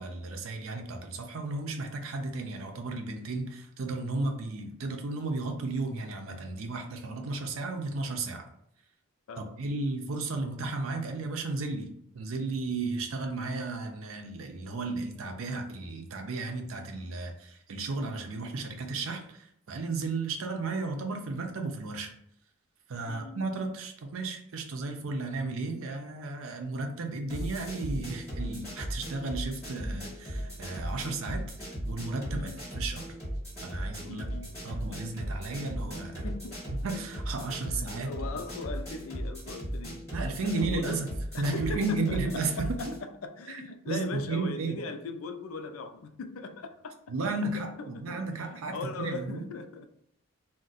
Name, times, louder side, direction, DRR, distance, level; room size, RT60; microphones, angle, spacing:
voice 1, 0.0-8.5 9.4-11.9 12.1-22.1 22.9-31.4 31.9-33.1 33.6-34.2 34.6-36.3 36.8-38.1 40.1-41.1 41.4-42.7 43.5-44.8 47.1-49.4, right 3 dB, 80° right, 0.5 m, -34 dB
voice 2, 23.1-23.4 32.3-32.6 34.0-34.5 36.2-36.8 38.0-40.1 40.4-47.1 47.8-48.2 48.7-49.9, left 3 dB, 80° left, 0.4 m, -39 dB
sound 1, 27.3-43.0, equal, 10° left, 1.5 m, -37 dB
2.5 x 2.1 x 3.9 m
head